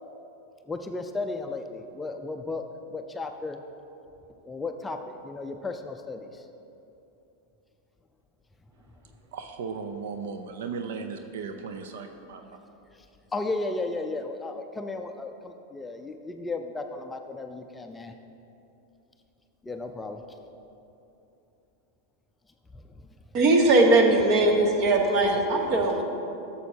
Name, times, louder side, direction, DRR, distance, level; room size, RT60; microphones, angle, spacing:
voice 1, 0.6-2.7 2.9-3.6 4.4-6.5 12.9-13.0 13.3-18.1 19.6-20.2 22.7-23.1 24.1-25.2 25.6-26.0, left 3 dB, 10° left, 5 dB, 0.4 m, -35 dB
voice 2, 9.3-12.5, right 5 dB, 75° right, 6 dB, 0.5 m, -36 dB
voice 3, 23.3-26.0, right 2 dB, 45° right, 2 dB, 1.1 m, -20 dB
11.0 x 7.0 x 2.8 m, 2.8 s
hypercardioid pair, 125°, 0 cm